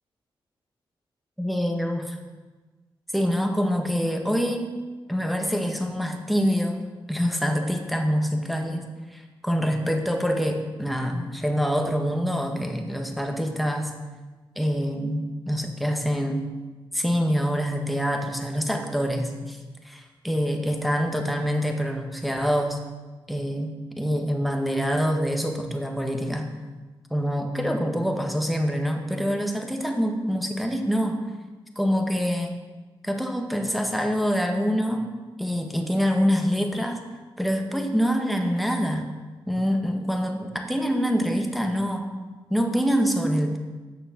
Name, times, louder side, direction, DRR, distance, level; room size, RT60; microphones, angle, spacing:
voice 1, 1.4-2.2 3.1-4.7 5.1-6.8 7.1-13.9 14.5-16.5 16.9-19.6 19.8-22.8 23.3-26.5 27.1-31.2 31.7-32.5 33.0-35.1 35.4-37.0 37.4-39.1 39.5-42.1 42.5-43.6, equal, ahead, 3 dB, 1.6 m, -25 dB
9.1 x 6.6 x 6.0 m, 1.3 s
cardioid pair, 50°, 9 cm